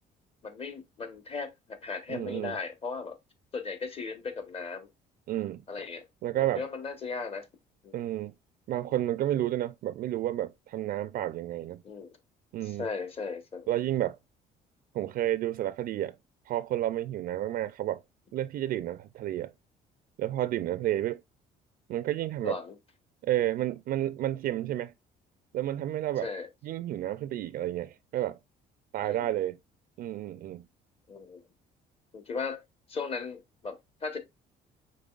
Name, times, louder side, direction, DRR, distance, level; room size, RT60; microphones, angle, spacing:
voice 1, 0.4-3.2 3.5-4.9 5.7-6.1 6.6-7.5 7.8-8.0 11.8-12.2 12.6-13.7 22.4-22.8 26.2-26.5 29.0-29.3 31.1-31.4 32.1-32.6 32.9-34.2, left 4 dB, 35° left, 1.2 m, -37 dB
voice 2, 2.1-2.6 5.3-5.6 6.2-6.6 7.9-8.3 8.7-11.8 12.5-12.9 13.7-14.2 14.9-16.2 16.5-18.0 18.3-19.5 20.2-21.2 21.9-22.6 23.2-24.9 25.5-26.3 26.6-28.4 28.9-29.6 30.0-30.7, right 13 dB, 60° right, 0.4 m, -31 dB
5.2 x 3.9 x 2.4 m
cardioid pair, 110°, 17 cm